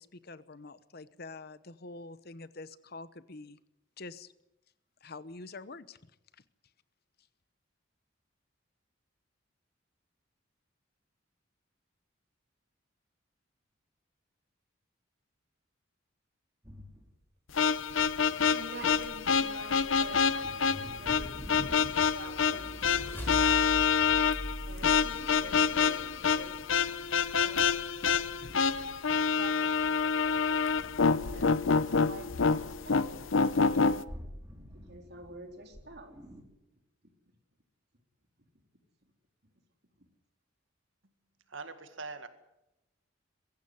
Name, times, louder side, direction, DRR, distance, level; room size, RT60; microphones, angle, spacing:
voice 1, 0.0-3.6 4.0-4.3 5.0-6.0, left 3 dB, 50° left, 15 dB, 1.0 m, -46 dB
sound 1, 16.6-17.1 17.7-18.4 18.7-27.2 27.5-32.8 33.1-36.4, equal, 15° right, 4.1 m, -50 dB
sound 2, 17.5-34.0, left 6 dB, 80° left, 0.8 m, -27 dB
voice 2, 18.5-23.7 24.6-26.6 27.3-28.0 29.2-30.7 31.2-33.3 34.6-36.1, right 2 dB, 55° right, 4 dB, 3.9 m, -48 dB
sound 3, 22.1-25.9, equal, 10° left, 5.9 m, -41 dB
voice 3, 41.5-42.3, right 4 dB, 75° right, 9 dB, 1.9 m, -42 dB
22.5 x 15.5 x 9.6 m, 0.90 s
head